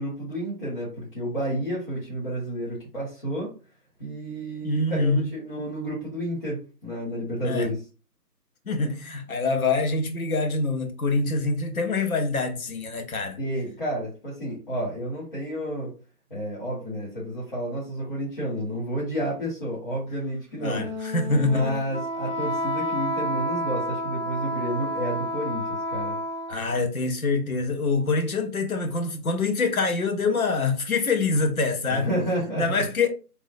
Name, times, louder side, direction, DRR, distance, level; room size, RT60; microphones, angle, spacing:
voice 1, 0.0-3.5 4.0-7.8 13.4-15.9 16.3-20.9 21.3-26.2 31.9-32.8, equal, 35° left, 1.3 m, -30 dB
voice 2, 4.6-5.3 7.4-7.7 8.7-13.4 20.6-21.8 26.5-32.1 32.6-33.1, left 3 dB, 60° left, 0.8 m, -25 dB
Wind instrument woodwind instrument, 20.5-26.7, left 1 dB, 50° right, 0.5 m, -30 dB
3.4 x 2.2 x 2.6 m
figure-of-eight pair, 145°, 48 cm